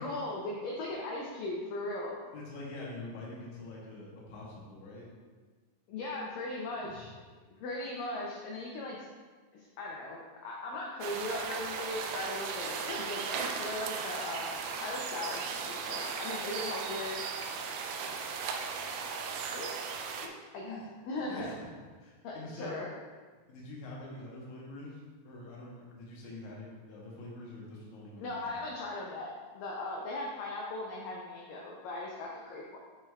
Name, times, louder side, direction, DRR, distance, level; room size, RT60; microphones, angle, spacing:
voice 1, 0.0-2.2 5.9-7.1 7.6-9.1 9.5-14.6 14.8-17.2 19.5-19.8 20.2-20.8 21.1-21.5 22.2-22.9 28.2-32.8, left 2 dB, 90° left, -2 dB, 1.9 m, -38 dB
voice 2, 2.3-5.1 6.8-7.0 20.4-20.8 21.2-21.6 22.0-22.8 23.5-28.5, left 2 dB, 70° left, -4 dB, 1.9 m, -45 dB
sound 1, 11.0-20.3, right 5 dB, 90° right, 2.0 m, -37 dB
7.7 x 6.0 x 2.3 m, 1.4 s
omnidirectional pair, 4.7 m